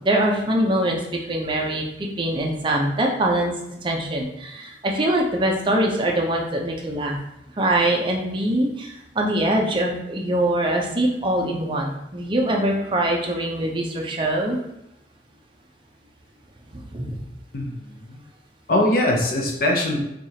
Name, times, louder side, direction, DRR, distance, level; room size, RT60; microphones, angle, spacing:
voice 1, 0.0-1.0 1.3-3.5 3.8-7.2 7.6-14.6 16.7-17.2, right 1 dB, 25° right, 0 dB, 0.5 m, -23 dB
voice 2, 17.5-18.2 18.7-20.0, left 1 dB, 50° left, 0 dB, 0.6 m, -22 dB
4.6 x 2.4 x 2.8 m, 0.84 s
head